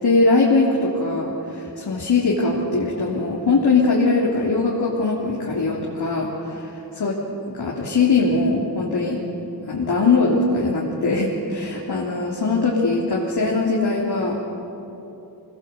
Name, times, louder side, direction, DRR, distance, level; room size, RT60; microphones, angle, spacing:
voice 1, 0.0-6.6 7.0-7.1 7.5-9.2 9.7-14.4, left 3 dB, 65° left, -5 dB, 3.5 m, -21 dB
25.5 x 20.5 x 8.3 m, 3.0 s
wide cardioid pair, 90°, 41 cm